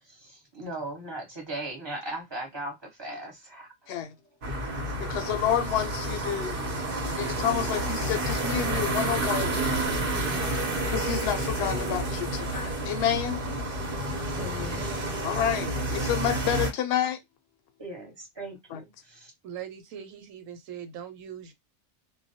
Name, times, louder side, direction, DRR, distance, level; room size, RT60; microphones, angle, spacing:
voice 1, 0.0-4.0 7.3-7.4 14.1-15.2 17.8-19.3, right 1 dB, 20° right, 1.1 m, -39 dB
sound 1, 4.4-16.7, right 1 dB, 50° right, 0.9 m, -30 dB
voice 2, 5.0-6.6 7.0-9.6 10.8-13.4 15.2-17.2 18.7-18.8, left 9 dB, 65° left, 0.7 m, -29 dB
voice 3, 19.4-21.5, right 9 dB, 90° right, 1.0 m, -41 dB
2.3 x 2.1 x 2.7 m
omnidirectional pair, 1.3 m